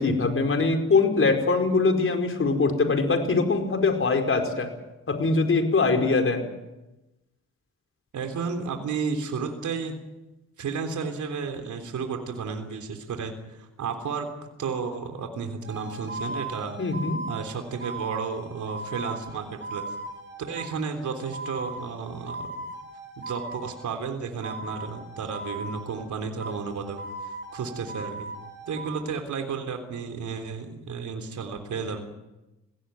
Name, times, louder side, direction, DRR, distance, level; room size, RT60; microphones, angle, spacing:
voice 1, 0.0-4.7 5.1-6.4 16.8-17.2, left 3 dB, 45° left, 5 dB, 5.0 m, -22 dB
voice 2, 8.1-9.9 10.6-14.3 14.6-16.8 17.3-19.8 20.5-22.7 23.2-27.0 27.5-28.3 28.7-32.0, right 5 dB, 70° right, 5 dB, 3.5 m, -32 dB
sound 1, 15.6-23.9 24.4-26.1 26.4-29.0, right 2 dB, 35° right, 7.4 m, -38 dB
21.5 x 16.5 x 9.3 m, 1.0 s
supercardioid pair, 65°, 31 cm